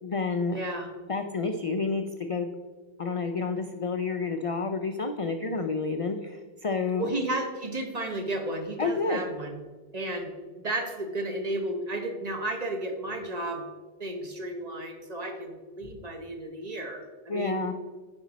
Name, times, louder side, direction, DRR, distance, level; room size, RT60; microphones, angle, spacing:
voice 1, 0.0-0.6 1.1-2.5 3.0-7.1 8.8-9.2 17.3-17.7, left 4 dB, 60° left, 6 dB, 0.3 m, -29 dB
voice 2, 0.5-0.9 7.0-9.6 9.9-10.3 10.6-13.6 14.0-17.6, right 1 dB, 40° right, 4 dB, 1.0 m, -33 dB
9.2 x 5.2 x 4.0 m, 1.4 s
omnidirectional pair, 1.1 m